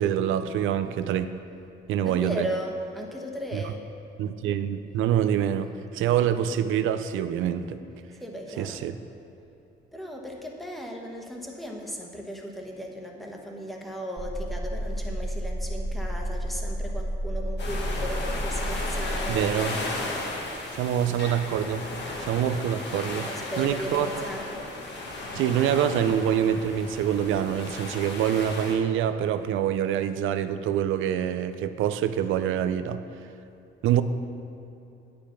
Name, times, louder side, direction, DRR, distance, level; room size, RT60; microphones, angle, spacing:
voice 1, 0.0-1.3 1.9-2.5 3.5-3.7 4.2-7.8 8.6-9.0 19.3-19.8 20.7-21.9 22.2-23.3 23.6-24.2 25.3-33.0 33.8-34.0, right 10 dB, 85° right, 11 dB, 0.4 m, -25 dB
voice 2, 2.0-3.8 8.2-8.8 9.9-19.5 23.2-24.8, equal, ahead, 0 dB, 1.1 m, -36 dB
sound 1, 14.2-19.3, equal, 15° right, 1.0 m, -31 dB
sound 2, 17.6-28.7, left 2 dB, 60° left, 1.5 m, -35 dB
8.6 x 5.1 x 5.8 m, 2.8 s
cardioid pair, 90°, 20 cm